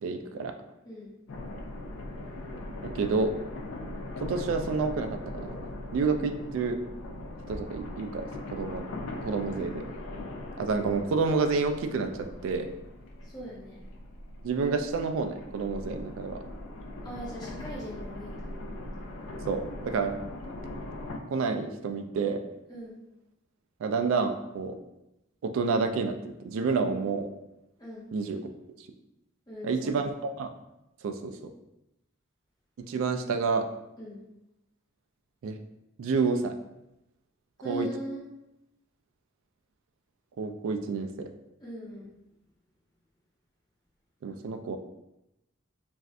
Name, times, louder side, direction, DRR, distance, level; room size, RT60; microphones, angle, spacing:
voice 1, 0.0-0.5 2.8-3.3 4.2-5.6 5.9-6.8 7.5-8.9 9.2-9.8 10.6-12.1 12.4-12.7 14.4-16.4 19.5-20.1 21.3-22.4 23.8-24.8 25.4-27.3 28.1-28.4 29.6-30.5 31.0-31.3 32.8-33.7 35.4-35.6 36.0-36.5 37.6-37.9 40.4-41.3 44.2-44.8, right 4 dB, 75° right, 7 dB, 0.3 m, -29 dB
sound 1, 1.3-21.2, left 2 dB, 75° left, 0.4 m, -40 dB
voice 2, 9.5-9.9 13.2-13.8 17.0-18.5 22.7-23.0 27.8-28.1 29.5-30.1 34.0-34.2 37.6-38.3 41.6-42.1, right 1 dB, 20° left, -7 dB, 0.9 m, -40 dB
2.6 x 2.4 x 3.2 m, 0.89 s
head